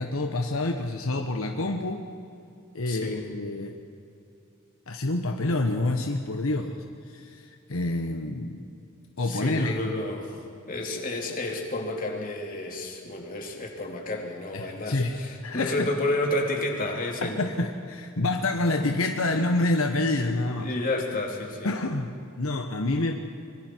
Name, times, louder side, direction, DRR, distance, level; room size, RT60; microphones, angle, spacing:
voice 1, 0.0-2.0 2.7-3.7 4.9-6.8 7.1-8.6 9.2-9.8 14.5-15.9 17.2-20.7 21.6-23.1, left 2 dB, 75° left, 4 dB, 1.2 m, -27 dB
voice 2, 2.9-3.2 9.2-10.3 10.7-17.4 20.4-21.7, left 1 dB, 40° left, 0 dB, 2.9 m, -31 dB
25.0 x 22.5 x 4.6 m, 2.6 s
head